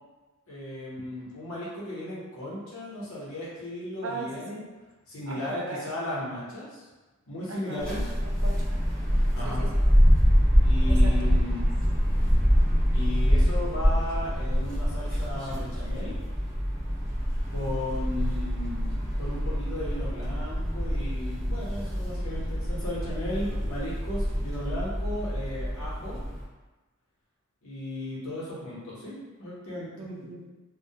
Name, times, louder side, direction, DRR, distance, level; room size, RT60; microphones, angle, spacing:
voice 1, 0.5-4.6 5.1-6.9 7.3-8.1 9.3-9.7 10.6-11.8 12.9-16.1 17.5-26.2 27.6-30.1, left 1 dB, 80° left, -7 dB, 0.9 m, -35 dB
voice 2, 4.0-4.7 5.3-5.9 7.5-8.6 9.4-9.8 10.9-11.7 30.0-30.5, right 2 dB, 70° right, 0 dB, 0.4 m, -39 dB
sound 1, 7.8-26.4, equal, 5° left, 0.5 m, -25 dB
2.2 x 2.1 x 2.7 m, 1.2 s
head